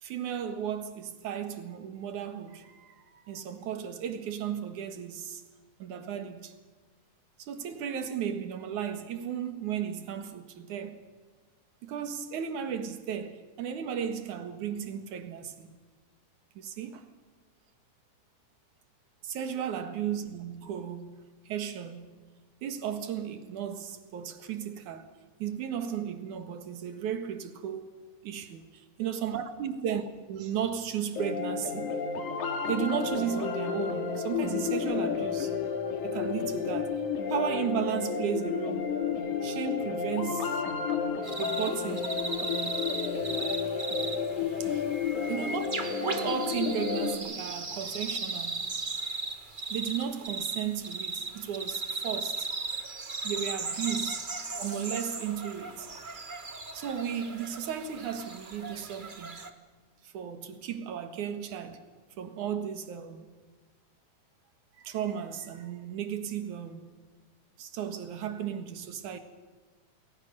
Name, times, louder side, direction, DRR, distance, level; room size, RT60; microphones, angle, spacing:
voice 1, 0.0-5.4 5.8-6.5 7.4-11.0 11.8-15.7 16.6-17.1 19.2-22.2 22.6-25.1 25.4-27.9 28.2-28.7 29.0-30.0 30.3-32.0 32.7-35.6 36.0-37.0 37.3-39.0 39.4-40.5 41.4-42.2 44.6-44.8 45.3-45.7 46.0-48.8 49.7-52.5 53.2-54.2 54.5-55.9 56.7-59.4 60.0-61.8 62.2-63.3 64.8-66.9 67.6-69.2, right 8 dB, 75° right, 3.1 m, -35 dB
sound 1, 31.2-47.2, left 6 dB, 75° left, 3.4 m, -31 dB
sound 2, 41.2-59.5, right 3 dB, 45° right, 0.6 m, -37 dB
29.5 x 21.0 x 6.7 m
omnidirectional pair, 3.6 m